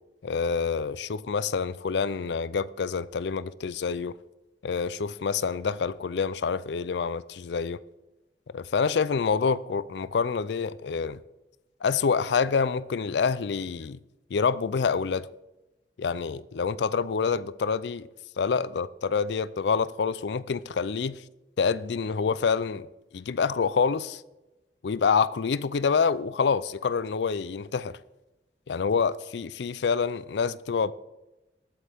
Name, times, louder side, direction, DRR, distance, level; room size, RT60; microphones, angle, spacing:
voice 1, 0.2-4.2 4.6-7.8 8.5-11.2 11.8-14.0 14.3-15.3 16.0-18.1 18.4-21.2 21.6-22.9 23.1-24.2 24.8-28.0 28.7-30.9, left 5 dB, 80° left, 0.4 m, -27 dB
20.0 x 8.1 x 3.5 m
head